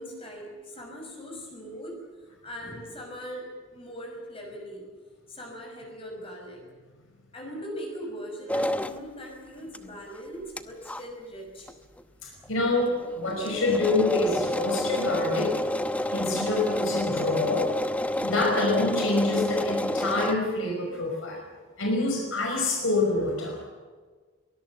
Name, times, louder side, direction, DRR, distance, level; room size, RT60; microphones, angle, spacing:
voice 1, 0.0-2.0 2.4-4.9 5.3-6.6 7.3-11.7, equal, 25° left, 1 dB, 5.7 m, -40 dB
sound 1, 8.5-9.0 9.7-9.8 10.2-10.3 10.6-10.7 10.9-11.0 11.7-11.8 12.0-12.1 12.4-12.5 12.8-20.4, left 1 dB, 5° left, 0.9 m, -29 dB
voice 2, 12.2-15.5 16.1-17.7 18.2-21.4 21.8-23.7, left 2 dB, 70° left, 0 dB, 5.6 m, -26 dB
23.5 x 20.0 x 7.4 m, 1.4 s
head